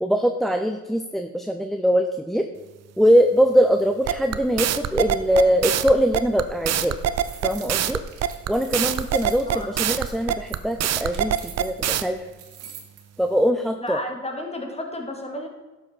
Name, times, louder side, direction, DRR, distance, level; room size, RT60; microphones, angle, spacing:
voice 1, 0.0-2.5 3.0-7.0 7.4-8.0 8.5-12.2 13.2-14.0, equal, ahead, 6 dB, 0.7 m, -22 dB
sound 1, 4.1-12.0, right 10 dB, 60° right, 0.7 m, -23 dB
sound 2, 6.9-13.0, right 8 dB, 90° right, 1.8 m, -44 dB
voice 2, 13.8-15.5, left 1 dB, 20° left, 3 dB, 2.3 m, -32 dB
11.5 x 7.4 x 4.6 m, 1.2 s
cardioid pair, 90°, 30 cm